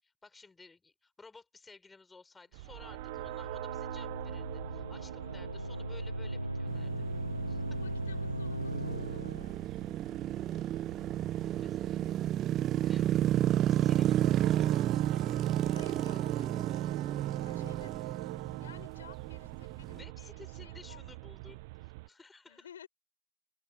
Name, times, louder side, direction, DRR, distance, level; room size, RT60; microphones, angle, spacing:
voice 1, 0.0-7.0 7.5-7.8 11.4-15.5 19.9-22.7, left 3 dB, 10° left, 7.8 m, -56 dB
sound 1, 2.5-22.1, right 23 dB, 50° right, 1.1 m, -44 dB
sound 2, 2.7-9.6, right 1 dB, 90° right, 0.9 m, -38 dB
sound 3, 6.7-20.0, right 12 dB, 30° right, 0.4 m, -31 dB
voice 2, 7.8-10.7 15.7-21.2 22.5-22.9, left 9 dB, 65° left, 7.9 m, -56 dB
open air
figure-of-eight pair, 90°, 0 cm